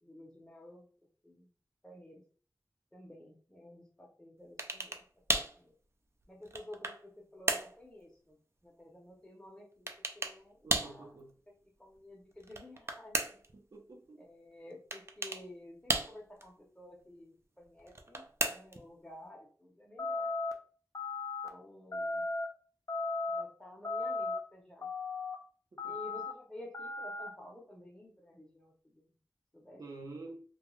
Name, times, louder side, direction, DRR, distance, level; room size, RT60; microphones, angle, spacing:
voice 1, 0.0-0.9 1.2-1.5 1.8-2.2 2.9-5.7 6.3-9.9 10.1-11.2 11.8-13.4 14.2-20.4 21.4-22.3 23.3-24.9 25.8-29.1 29.5-29.8, left 1 dB, 10° left, 0.7 m, -52 dB
sound 1, 4.6-5.0 5.3-5.6 6.2-7.0 7.5-7.8 9.9-10.4 10.7-11.0 12.4-13.5 14.9-15.4 15.9-16.4 17.9-18.8, right 2 dB, 40° right, 0.4 m, -34 dB
voice 2, 10.6-11.3 13.5-14.2 25.8-25.9 29.8-30.4, right 2 dB, 70° right, 0.7 m, -48 dB
sound 2, 20.0-20.5 20.9-21.5 21.9-22.5 22.9-23.4 23.8-24.4 24.8-25.3 25.8-26.3 26.7-27.3, left 3 dB, 50° left, 0.5 m, -36 dB
2.3 x 2.2 x 3.0 m
wide cardioid pair, 70°, 7 cm